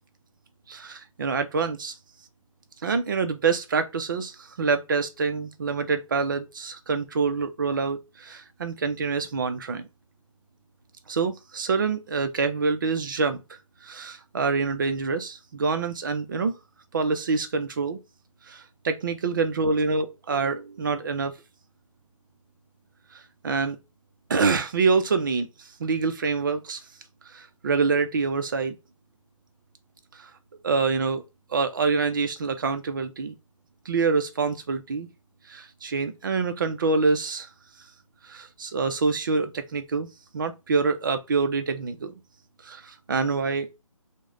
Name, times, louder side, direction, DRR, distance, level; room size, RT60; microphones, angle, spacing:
voice 1, 0.7-1.9 2.8-9.9 11.1-13.4 13.8-16.5 16.9-18.0 18.5-21.3 23.4-23.8 24.3-25.5 25.8-26.8 27.3-28.8 30.2-30.3 30.6-31.2 31.5-33.3 33.9-35.1 35.5-37.5 38.3-40.1 40.3-42.1 42.6-43.7, right 4 dB, 35° right, 0.5 m, -26 dB
3.0 x 2.1 x 3.6 m
hypercardioid pair, 165°, 18 cm